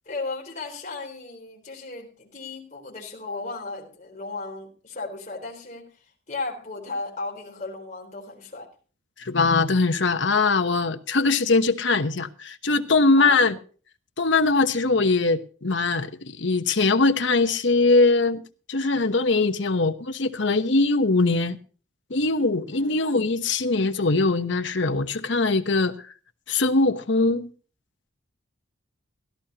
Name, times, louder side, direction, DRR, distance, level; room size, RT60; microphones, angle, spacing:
voice 1, 0.1-8.7 12.8-13.4 22.7-22.9, left 3 dB, 35° left, 4.1 m, -35 dB
voice 2, 9.2-13.5 14.2-18.4 18.7-21.6 22.1-25.9 26.5-27.5, left 3 dB, 65° left, 1.0 m, -21 dB
17.0 x 13.5 x 2.9 m
head